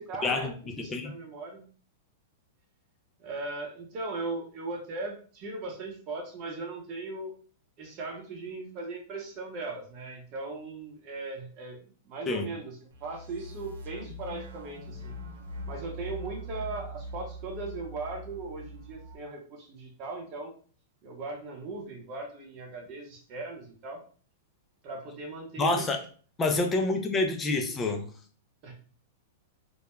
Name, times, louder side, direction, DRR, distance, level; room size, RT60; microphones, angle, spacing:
voice 1, 0.0-1.7 3.2-7.3 7.8-11.8 12.0-15.1 15.6-20.5 21.0-24.0 24.8-25.9 27.1-27.2 28.6-28.7, right 3 dB, 40° right, 1 dB, 0.8 m, -38 dB
voice 2, 0.8-1.2 12.3-12.5 25.6-26.0 26.4-28.0, left 2 dB, 15° left, 4 dB, 0.4 m, -27 dB
sound 1, 12.9-19.1, equal, 75° right, 0.5 m, -42 dB
2.3 x 2.0 x 3.0 m, 0.41 s
hypercardioid pair, 145°, 0 cm